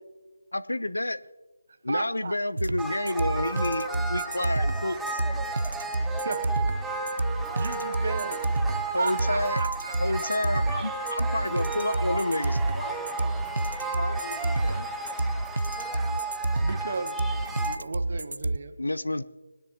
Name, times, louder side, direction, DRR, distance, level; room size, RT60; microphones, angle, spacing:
voice 1, 0.5-1.2 1.8-5.2 8.9-9.6 10.0-12.6 18.8-19.2, left 1 dB, 90° left, 16 dB, 0.4 m, -29 dB
voice 2, 1.9-2.4 6.2-6.4 7.6-8.4 8.9-10.2 16.6-18.7, right 3 dB, 55° right, 9 dB, 0.9 m, -34 dB
sound 1, 2.6-18.6, right 2 dB, 80° right, 0.3 m, -28 dB
sound 2, 2.8-17.8, right 3 dB, 5° right, 0.5 m, -34 dB
voice 3, 12.1-13.1 13.9-14.9, left 3 dB, 45° left, 5 dB, 1.4 m, -38 dB
20.5 x 9.9 x 2.8 m, 1.2 s
figure-of-eight pair, 160°, 0 cm